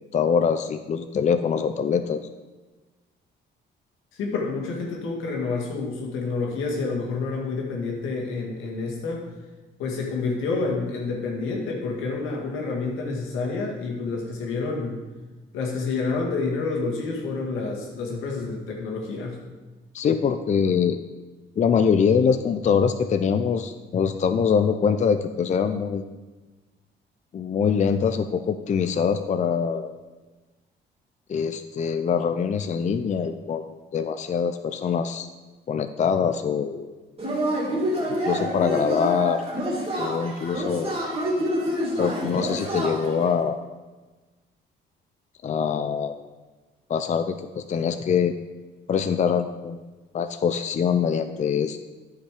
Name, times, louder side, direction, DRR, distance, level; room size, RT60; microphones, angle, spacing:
voice 1, 0.1-2.2 19.9-21.0 21.6-26.0 27.3-29.9 31.3-35.3 35.7-36.9 38.1-39.4 40.0-40.9 42.0-43.6 45.4-46.1 46.9-48.3 48.9-49.8 50.1-51.8, left 6 dB, 35° left, 8 dB, 0.5 m, -24 dB
voice 2, 4.1-9.2 9.8-15.0 15.5-19.4, left 4 dB, 90° left, -1 dB, 2.0 m, -28 dB
Yell / Cheering, 37.2-43.3, equal, 30° right, 2.7 m, -27 dB
10.5 x 5.9 x 4.9 m, 1.2 s
cardioid pair, 90°, 20 cm